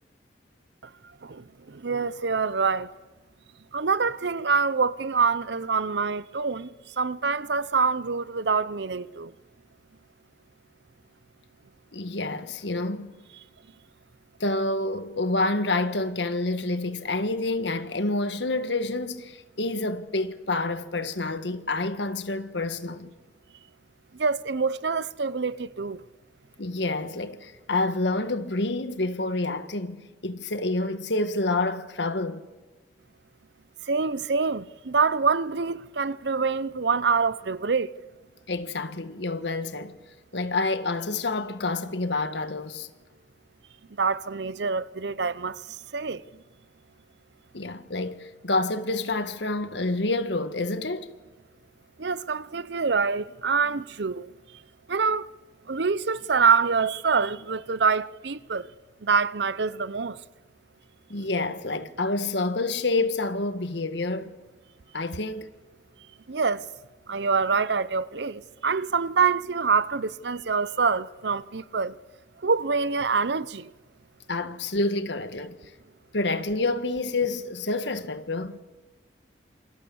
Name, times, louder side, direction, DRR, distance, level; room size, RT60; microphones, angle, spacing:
voice 1, 1.2-2.9 3.7-9.3 24.2-26.0 33.9-38.0 44.0-46.2 52.0-54.3 54.9-55.3 55.7-58.7 59.0-60.2 66.3-66.7 67.1-72.0 72.4-73.7, right 5 dB, 70° right, 0.7 m, -26 dB
voice 2, 11.9-13.1 14.4-23.1 26.6-32.4 38.5-39.9 40.3-42.9 47.5-51.1 61.1-64.3 64.9-65.5 74.3-75.5 76.1-78.6, left 2 dB, 75° left, 1.6 m, -28 dB
27.0 x 26.0 x 7.1 m
head